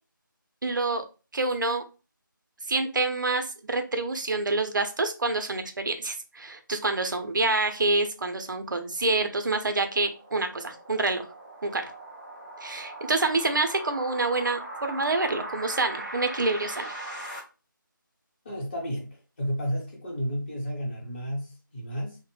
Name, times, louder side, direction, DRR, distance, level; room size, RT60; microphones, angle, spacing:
voice 1, 0.6-1.0 1.3-1.8 2.7-11.3 11.6-11.9 12.6-16.9, right 3 dB, 65° right, 0.6 m, -27 dB
sound 1, 8.9-17.4, right 1 dB, 10° left, 0.5 m, -40 dB
voice 2, 18.4-22.2, equal, 30° left, 0.9 m, -32 dB
2.8 x 2.1 x 3.2 m
figure-of-eight pair, 170°, 11 cm